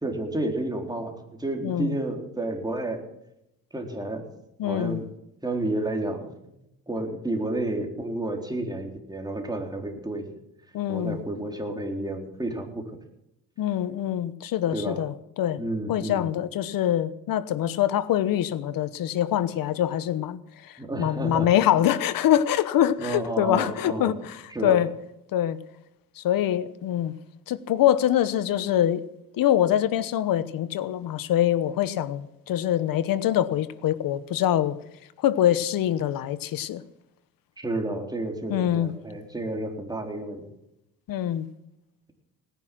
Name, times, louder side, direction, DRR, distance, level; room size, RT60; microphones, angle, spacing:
voice 1, 0.0-3.0 3.7-4.3 4.6-5.0 5.4-6.5 6.9-10.3 10.9-12.8 14.7-15.0 15.6-16.3 20.8-21.5 23.0-24.1 24.5-24.8 37.6-40.5, right 2 dB, 10° right, 4.0 m, -31 dB
voice 2, 1.6-2.0 4.6-5.0 10.7-11.2 13.6-15.6 15.9-24.9 25.3-25.6 26.2-27.1 27.5-29.0 29.4-34.8 35.2-36.8 38.5-38.9 41.1-41.5, left 11 dB, 75° left, 1.1 m, -24 dB
19.0 x 10.5 x 6.2 m
cardioid pair, 85°, 34 cm